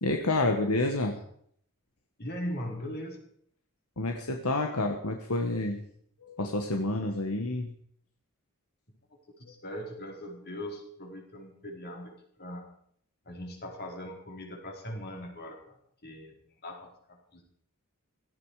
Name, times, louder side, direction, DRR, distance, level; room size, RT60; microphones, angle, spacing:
voice 1, 0.0-1.2 4.0-5.8 6.2-7.7, left 2 dB, 75° left, 3 dB, 1.6 m, -29 dB
voice 2, 2.2-3.2 9.4-12.1 12.4-12.7 13.3-15.8 16.0-16.3 16.6-17.4, equal, 45° left, 1 dB, 4.5 m, -40 dB
17.0 x 14.5 x 5.0 m, 0.65 s
head